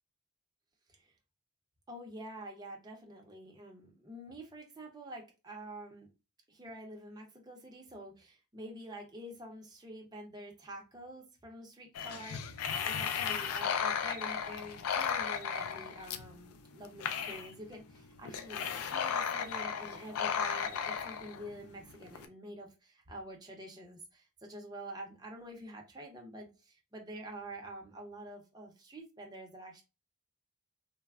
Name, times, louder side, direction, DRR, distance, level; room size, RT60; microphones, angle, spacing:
voice 1, 1.9-6.1 6.5-29.8, right 1 dB, 20° right, 1 dB, 0.5 m, -47 dB
sound 1, 11.9-22.3, left 7 dB, 70° left, 0.3 m, -35 dB
3.2 x 2.0 x 2.3 m, 0.29 s
head